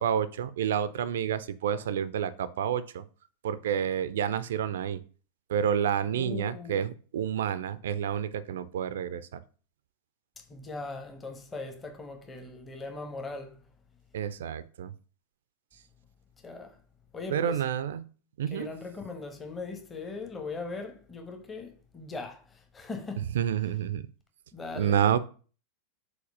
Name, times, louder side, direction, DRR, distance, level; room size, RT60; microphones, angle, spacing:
voice 1, 0.0-3.0 3.4-5.0 5.5-9.4 14.1-14.9 17.3-18.0 18.4-18.7 23.3-24.0 24.8-25.2, right 9 dB, 60° right, 0.4 m, -29 dB
voice 2, 6.1-6.8 10.5-13.6 16.4-16.7 17.1-17.6 18.5-22.4 22.7-23.3 24.5-25.0, left 3 dB, 15° left, 1.1 m, -39 dB
5.0 x 4.0 x 5.3 m
figure-of-eight pair, 90°, 0 cm